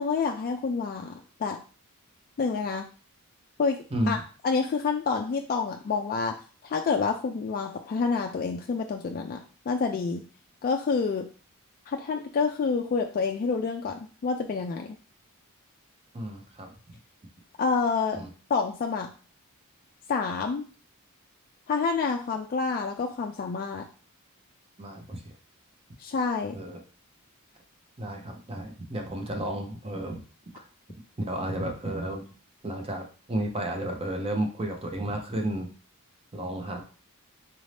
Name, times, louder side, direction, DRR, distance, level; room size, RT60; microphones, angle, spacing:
voice 1, 0.0-1.6 2.4-2.8 3.6-4.2 4.4-6.3 6.6-9.4 9.7-10.2 10.6-11.2 11.9-15.0 17.6-18.2 18.5-19.1 20.1-20.6 21.7-23.8 26.0-26.6, left 5 dB, 40° left, 3 dB, 0.3 m, -28 dB
voice 2, 16.1-16.7 18.1-18.3 24.8-25.4 26.5-26.8 28.0-30.2 30.5-30.6 31.2-32.2 32.6-35.7 36.3-36.8, right 1 dB, 25° right, 3 dB, 0.7 m, -32 dB
4.0 x 2.6 x 3.2 m, 0.37 s
head